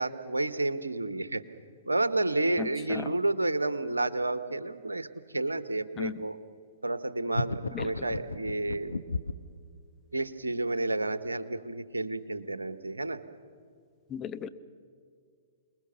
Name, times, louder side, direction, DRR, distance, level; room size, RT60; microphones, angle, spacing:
voice 1, 0.0-1.4 1.8-5.1 5.3-6.4 6.8-8.9 10.1-13.2, right 2 dB, 85° right, 12 dB, 1.2 m, -30 dB
voice 2, 2.6-3.1 6.0-6.1 7.7-8.1 14.1-14.5, left 8 dB, 25° left, 10 dB, 1.0 m, -36 dB
sound 1, 7.3-9.5, left 3 dB, 85° left, 1.0 m, -33 dB
28.0 x 21.0 x 7.0 m, 2.2 s
figure-of-eight pair, 115°, 0 cm